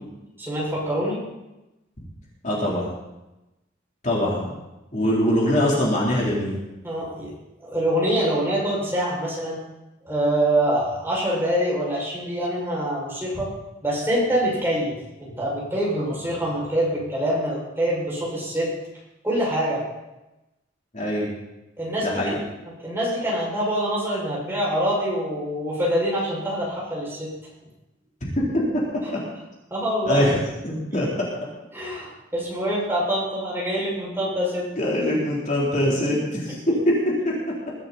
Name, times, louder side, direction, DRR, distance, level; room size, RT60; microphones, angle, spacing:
voice 1, 0.4-1.2 6.8-7.3 7.6-9.6 10.0-13.5 13.8-18.7 19.2-19.8 21.8-22.4 22.8-27.3 29.7-30.3 31.7-34.7 36.5-36.6, right 1 dB, 10° right, -5 dB, 6.3 m, -25 dB
voice 2, 2.4-2.9 4.0-4.6 4.9-6.6 20.9-21.3 22.0-22.4 28.2-28.4 30.0-30.4 30.6-31.1 34.8-36.9 37.2-37.3, left 1 dB, 40° left, -5 dB, 3.9 m, -23 dB
21.0 x 12.5 x 4.3 m, 0.97 s
head